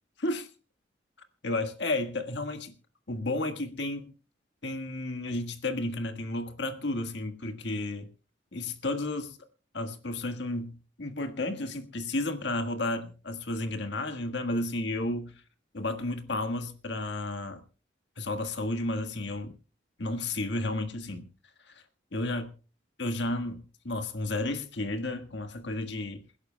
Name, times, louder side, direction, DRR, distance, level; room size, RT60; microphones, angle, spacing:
voice 1, 1.4-2.7 3.1-4.1 4.6-8.1 8.5-9.4 9.7-15.3 15.7-17.6 18.2-19.5 20.0-21.3 21.7-21.8 22.1-22.5 23.0-26.4, left 2 dB, 70° left, 1.7 m, -32 dB
28.5 x 11.0 x 2.2 m
head